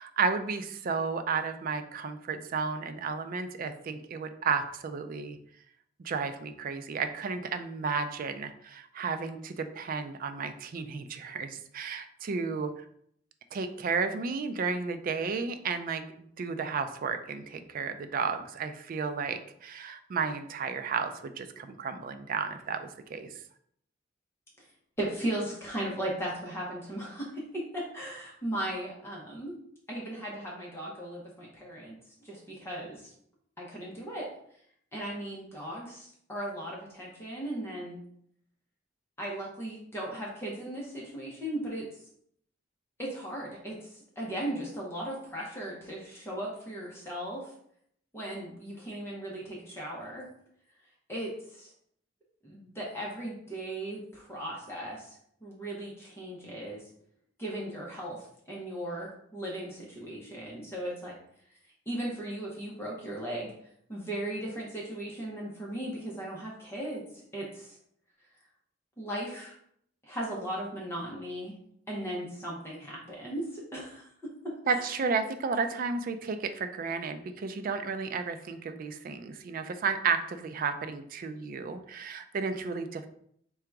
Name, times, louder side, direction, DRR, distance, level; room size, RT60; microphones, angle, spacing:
voice 1, 0.0-5.4 6.0-12.7 13.5-23.3 74.7-83.1, right 5 dB, 50° right, 9 dB, 0.4 m, -33 dB
voice 2, 25.0-29.6 29.9-32.0 32.2-33.1 33.6-34.3 34.9-38.0 39.2-42.0 43.0-47.5 48.1-50.3 51.1-51.7 52.4-56.9 57.4-61.1 61.9-63.5 63.9-67.8 69.0-69.6 70.0-71.6 71.9-74.9, right 1 dB, 15° left, -4 dB, 0.8 m, -37 dB
3.7 x 2.3 x 4.5 m, 0.67 s
head